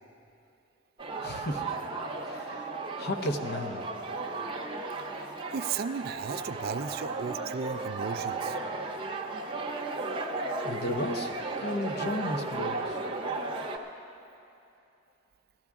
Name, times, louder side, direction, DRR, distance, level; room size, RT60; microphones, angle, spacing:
sound 1, 1.0-13.8, right 3 dB, 25° right, 0.7 m, -35 dB
voice 1, 1.2-1.7 2.2-3.8 10.6-13.0, left 1 dB, 50° left, 5 dB, 0.8 m, -34 dB
voice 2, 5.5-8.6, right 6 dB, 45° right, 11 dB, 0.3 m, -35 dB
16.5 x 13.0 x 3.6 m, 2.8 s
head